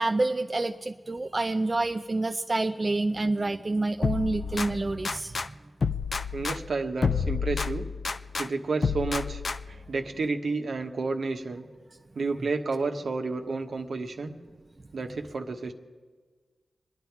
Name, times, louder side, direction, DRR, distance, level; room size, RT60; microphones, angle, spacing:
voice 1, 0.0-5.3, right 2 dB, 35° right, 7 dB, 0.5 m, -28 dB
sound 1, 4.0-5.5 5.8-8.5 8.8-9.9, left 5 dB, 60° left, 0.5 m, -30 dB
voice 2, 6.3-7.9 8.4-9.4 9.7-11.7 12.1-14.4 14.9-15.7, right 3 dB, 75° right, 4 dB, 1.2 m, -31 dB
25.5 x 10.0 x 4.7 m, 1.4 s
cardioid pair, 55°, 0 cm